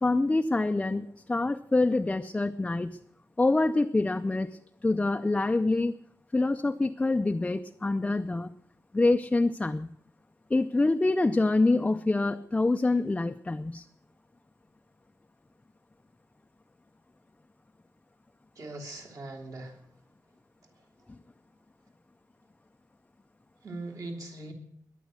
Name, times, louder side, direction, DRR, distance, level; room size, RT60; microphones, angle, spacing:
voice 1, 0.0-3.0 3.4-5.9 6.3-8.5 8.9-9.9 10.5-13.9 21.1-21.2, left 2 dB, 20° left, 7 dB, 0.5 m, -26 dB
voice 2, 18.5-19.9 23.6-24.5, right 2 dB, 60° right, 0 dB, 3.0 m, -40 dB
21.5 x 9.2 x 6.3 m, 0.71 s
wide cardioid pair, 160°, 7 cm